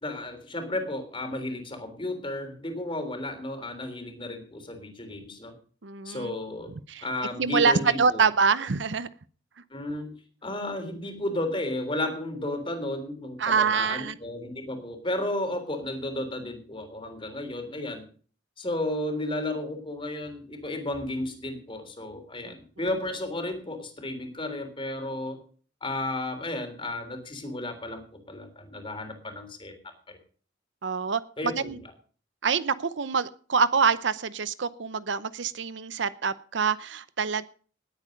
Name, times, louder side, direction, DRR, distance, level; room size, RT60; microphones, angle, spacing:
voice 1, 0.0-5.5 6.0-6.7 7.0-8.2 9.7-10.1 10.4-18.0 18.6-25.4 25.8-29.7 30.1-30.2 31.4-31.7, left 1 dB, 25° left, 6 dB, 3.4 m, -33 dB
voice 2, 5.8-6.3 6.9-7.1 7.4-9.1 13.4-14.2 22.5-22.6 30.8-31.8 32.4-37.4, right 5 dB, 70° right, 15 dB, 0.8 m, -25 dB
19.5 x 8.6 x 5.1 m, 0.42 s
head